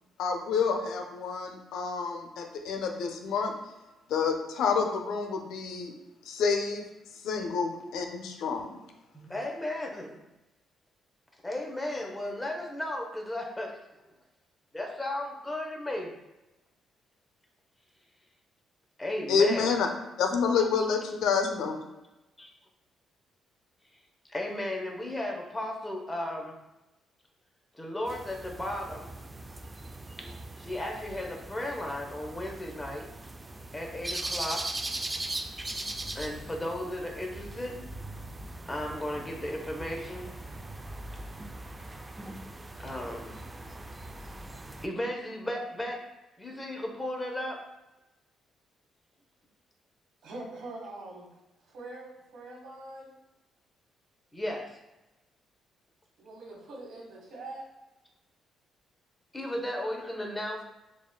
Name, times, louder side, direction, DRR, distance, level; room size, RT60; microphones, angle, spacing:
voice 1, 0.2-3.5 4.1-5.9 6.3-6.9 7.2-8.7 19.3-19.9 20.2-21.8, left 5 dB, 80° left, 4 dB, 0.5 m, -28 dB
voice 2, 9.1-10.2 11.4-13.7 14.7-16.1 19.0-19.7 22.4-22.5 24.2-26.6 27.7-29.1 30.6-33.1 33.7-34.6 36.1-37.8 38.7-40.3 42.4-43.4 44.8-46.0 46.4-47.6 54.3-54.8 59.3-60.6, left 1 dB, 15° left, 0 dB, 0.8 m, -35 dB
sound 1, 28.1-44.9, right 2 dB, 20° right, 0.3 m, -40 dB
voice 3, 50.2-51.3 51.7-53.1 56.2-57.6, right 2 dB, 75° right, -2 dB, 1.5 m, -43 dB
6.9 x 2.4 x 2.2 m, 0.99 s
cardioid pair, 90°, 0 cm